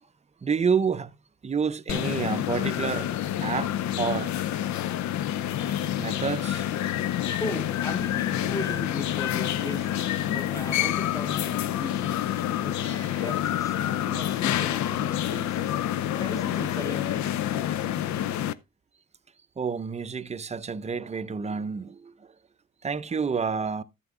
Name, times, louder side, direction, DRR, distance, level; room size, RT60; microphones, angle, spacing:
voice 1, 0.4-1.1 1.4-3.1 3.4-4.3 6.0-6.9 12.8-13.3 19.6-22.3 22.8-23.8, right 5 dB, 20° right, 0.5 m, -29 dB
sound 1, 1.9-18.5, left 11 dB, 70° left, 0.5 m, -28 dB
voice 2, 7.4-13.8 14.0-15.8 16.1-17.6, left 2 dB, 10° left, 0.8 m, -37 dB
13.0 x 7.7 x 2.3 m
cardioid pair, 90°, 30 cm